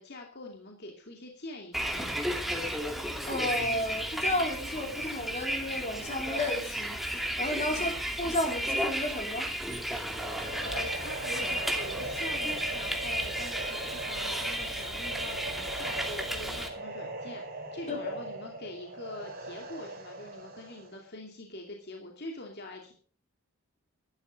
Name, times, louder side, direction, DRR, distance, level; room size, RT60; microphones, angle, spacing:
voice 1, 0.0-2.1 7.7-8.0 10.6-22.9, left 2 dB, 50° left, 2.5 m, -44 dB
Bus, 1.7-16.7, equal, ahead, 2.5 m, -33 dB
voice 2, 3.2-7.0 7.4-7.9 8.2-9.5 17.9-18.0, left 1 dB, 30° left, 3.9 m, -32 dB
sound 1, 9.9-21.0, right 2 dB, 45° right, 3.5 m, -40 dB
15.0 x 12.0 x 5.2 m
head